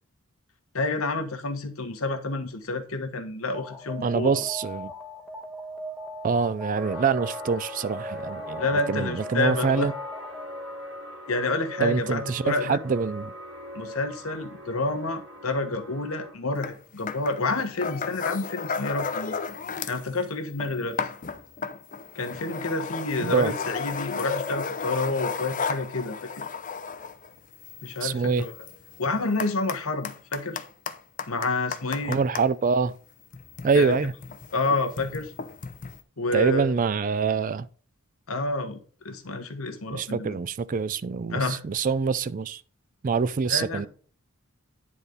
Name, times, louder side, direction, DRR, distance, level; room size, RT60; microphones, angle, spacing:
voice 1, 0.7-4.4 8.6-9.9 11.3-12.8 13.7-19.3 19.9-21.0 22.1-26.4 27.8-28.5 29.0-30.6 31.3-32.2 33.7-34.0 34.5-35.3 36.2-36.7 38.3-38.8 39.0-40.4 41.3-41.6 43.5-43.9, left 2 dB, 85° left, 1.3 m, -29 dB
Alarm, 3.5-10.6, equal, 5° right, 1.0 m, -39 dB
voice 2, 4.0-4.9 6.2-8.6 8.9-9.9 11.8-13.3 23.2-23.5 28.0-28.4 32.1-32.9 33.6-34.1 36.3-37.7 39.9-42.6 43.0-43.9, right 5 dB, 40° right, 0.3 m, -25 dB
s piano tapeish random etude scape, 6.8-16.3, left 1 dB, 80° right, 3.8 m, -40 dB
sound 1, 16.6-16.8 17.1-20.1 20.4-32.5 33.2-36.0, left 5 dB, 40° left, 0.6 m, -34 dB
10.0 x 4.1 x 5.1 m
head